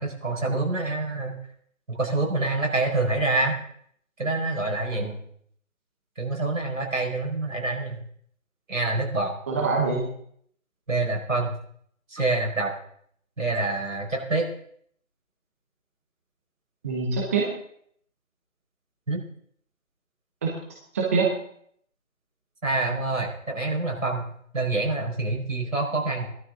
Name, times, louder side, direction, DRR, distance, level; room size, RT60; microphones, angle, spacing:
voice 1, 0.0-1.4 1.9-3.6 4.2-5.1 6.2-8.0 8.7-9.3 10.9-11.5 12.1-12.7 13.4-14.5 19.1-19.2 22.6-24.3 24.5-26.3, right 2 dB, 70° right, 1 dB, 5.1 m, -26 dB
voice 2, 9.5-10.0 16.8-17.5 20.4-20.5 20.9-21.3, right 4 dB, 10° right, -2 dB, 0.9 m, -24 dB
17.5 x 12.0 x 3.7 m, 0.64 s
figure-of-eight pair, 155°, 41 cm